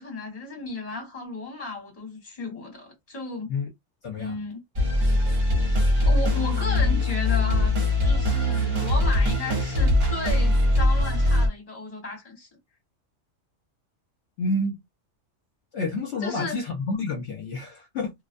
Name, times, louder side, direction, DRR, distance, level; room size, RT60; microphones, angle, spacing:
voice 1, 0.0-3.5 4.2-4.6 6.0-7.8 8.0-12.5 16.2-16.6, left 3 dB, 30° left, 1.3 m, -34 dB
voice 2, 4.0-4.4 14.4-14.8 15.7-18.1, left 2 dB, 65° left, 1.0 m, -29 dB
sound 1, 4.8-11.5, left 1 dB, 50° right, 1.2 m, -21 dB
2.5 x 2.1 x 2.5 m
omnidirectional pair, 1.3 m